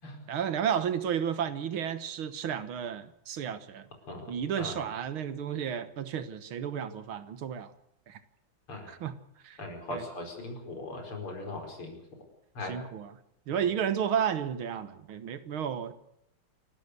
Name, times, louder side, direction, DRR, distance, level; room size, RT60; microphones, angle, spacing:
voice 1, 0.3-3.9 4.3-7.7 8.1-8.2 8.9-9.2 9.4-10.1 12.6-13.2 13.5-15.9, right 8 dB, 75° right, 12 dB, 2.1 m, -32 dB
voice 2, 9.6-12.0 12.6-12.7, left 2 dB, 85° left, 3 dB, 5.6 m, -39 dB
28.5 x 12.5 x 8.2 m, 0.76 s
omnidirectional pair, 2.3 m